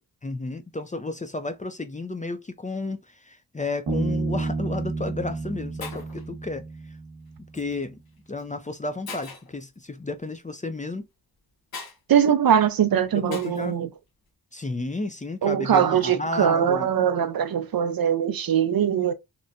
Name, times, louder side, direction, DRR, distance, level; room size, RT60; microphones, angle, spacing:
voice 1, 0.2-6.6 7.5-8.0 8.3-11.1 13.1-13.7 14.5-16.9, left 2 dB, 20° left, 0.5 m, -32 dB
Bass guitar, 3.9-7.4, right 3 dB, 85° right, 1.0 m, -30 dB
Shatter, 4.6-4.8 5.5-5.6 5.8-6.3 7.5-7.8 8.4-8.5 9.1-9.6 11.7-12.0 13.3-13.7, left 4 dB, 60° left, 0.9 m, -39 dB
voice 2, 12.1-13.9 15.4-19.1, right 8 dB, 60° right, 0.5 m, -21 dB
2.9 x 2.1 x 2.5 m
cardioid pair, 40°, 41 cm